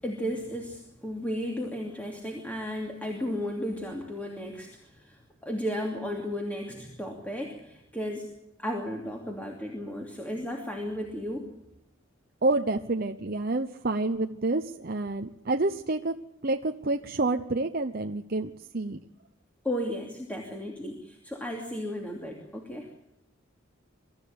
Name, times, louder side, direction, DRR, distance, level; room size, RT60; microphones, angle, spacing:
voice 1, 0.0-8.3 8.6-11.5 19.6-22.9, equal, 10° left, 1 dB, 2.7 m, -34 dB
voice 2, 12.4-16.1 16.4-19.0, right 2 dB, 50° right, 5 dB, 0.9 m, -28 dB
24.5 x 14.0 x 8.8 m, 0.88 s
head